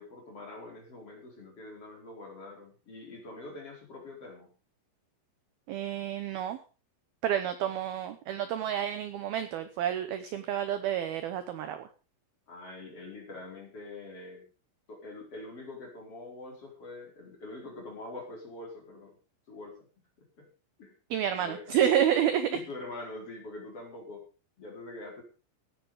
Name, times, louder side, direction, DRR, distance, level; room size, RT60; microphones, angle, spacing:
voice 1, 0.0-4.5 10.8-10.9 12.5-14.4 14.9-19.2 19.5-19.9 20.2-20.5 20.8-21.0 21.3-21.8 22.5-24.3 24.6-25.2, left 2 dB, 30° left, 1 dB, 5.0 m, -44 dB
voice 2, 5.7-6.6 7.2-11.9 21.1-22.5, right 10 dB, 80° right, 11 dB, 2.2 m, -29 dB
16.0 x 10.0 x 5.1 m, 0.34 s
omnidirectional pair, 5.8 m